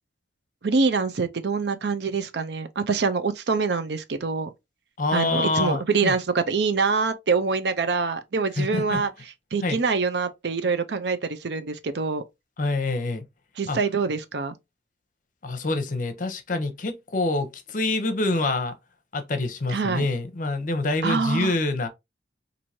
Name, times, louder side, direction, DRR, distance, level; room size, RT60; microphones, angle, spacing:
voice 1, 0.6-4.5 5.1-9.1 9.5-12.2 13.6-14.6 19.7-20.1 21.0-21.5, right 4 dB, 65° right, 0.5 m, -25 dB
voice 2, 5.0-6.1 8.6-9.0 9.6-9.8 12.6-13.2 13.7-13.8 15.4-18.7 19.1-21.9, left 2 dB, 45° left, 0.7 m, -26 dB
4.5 x 2.6 x 2.7 m
head